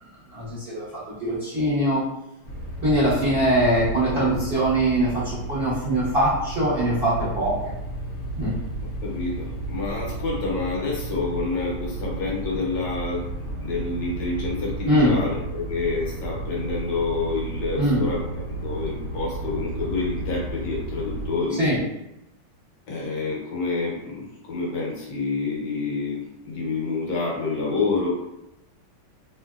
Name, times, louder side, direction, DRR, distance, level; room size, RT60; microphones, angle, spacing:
voice 1, 0.3-0.8 1.2-2.0 2.8-7.6 8.4-8.5 14.8-15.2 17.8-18.0 21.6-21.8, right 1 dB, 40° right, -11 dB, 1.0 m, -22 dB
sound 1, 2.4-21.3, right 2 dB, 85° left, 0.6 m, -33 dB
voice 2, 8.8-13.2 13.6-21.6 22.9-28.1, left 3 dB, 65° left, -3 dB, 1.3 m, -28 dB
3.1 x 2.6 x 2.3 m, 0.89 s
omnidirectional pair, 2.2 m